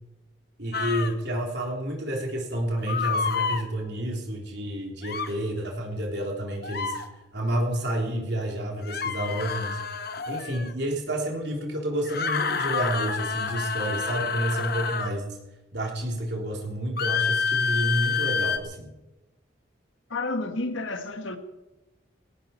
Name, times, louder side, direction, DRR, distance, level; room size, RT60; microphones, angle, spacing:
voice 1, 0.6-6.9 7.3-9.8 10.3-15.2 15.7-18.9, right 1 dB, 55° right, 3.4 m, -29 dB
sound 1, 0.7-1.1 2.9-3.6 5.0-5.3 6.6-7.0 8.8-10.7 12.1-15.2 17.0-18.6, left 5 dB, 50° left, 1.1 m, -28 dB
voice 2, 20.1-21.4, left 2 dB, 75° left, 1.8 m, -30 dB
18.5 x 17.5 x 4.5 m
head